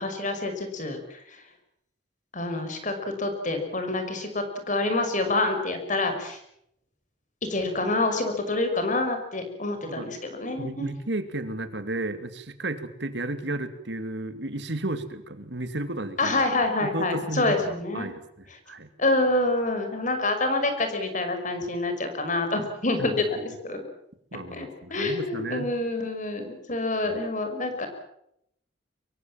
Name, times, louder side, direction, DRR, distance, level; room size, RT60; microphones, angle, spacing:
voice 1, 0.0-1.4 2.3-6.4 7.5-10.9 16.2-18.1 19.0-23.8 24.5-27.9, left 2 dB, 45° left, 6 dB, 5.7 m, -27 dB
voice 2, 10.6-18.9 23.0-23.1 24.3-25.7 27.1-27.2, right 2 dB, 65° right, 10 dB, 2.6 m, -33 dB
24.5 x 23.0 x 7.6 m, 0.75 s
head